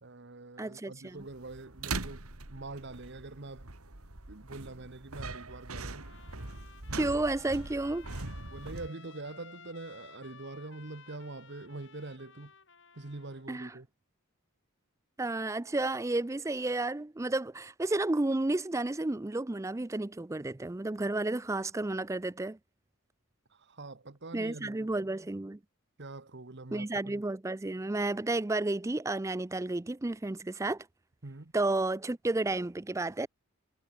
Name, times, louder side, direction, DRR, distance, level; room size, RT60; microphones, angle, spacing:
voice 1, 0.0-3.7 4.3-6.1 8.5-12.5 12.9-13.9 23.5-25.1 26.0-27.2 31.2-31.5, right 2 dB, 50° right, 1.2 m, -44 dB
voice 2, 0.6-1.2 6.9-8.1 13.5-13.7 15.2-22.6 24.3-25.6 26.7-30.9 31.5-33.3, right 2 dB, 15° right, 0.4 m, -32 dB
sound 1, 1.2-8.9, right 3 dB, 75° right, 2.7 m, -41 dB
Trumpet, 5.9-13.5, left 6 dB, 55° left, 5.8 m, -56 dB
head